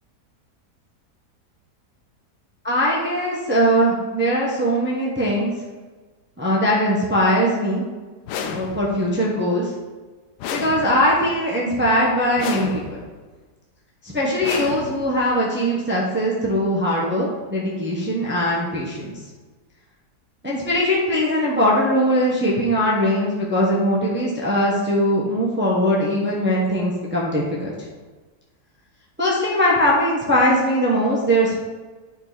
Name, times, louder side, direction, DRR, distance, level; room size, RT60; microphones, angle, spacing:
voice 1, 2.6-5.5 6.4-7.8 8.4-9.7 10.5-12.8 14.0-19.2 20.4-27.9 29.2-31.6, equal, 10° right, -5 dB, 1.1 m, -20 dB
sound 1, 8.3-9.1 10.4-11.3 12.4-13.2 14.4-15.3, left 6 dB, 80° left, 1.3 m, -31 dB
10.0 x 4.4 x 4.1 m, 1.3 s
omnidirectional pair, 1.8 m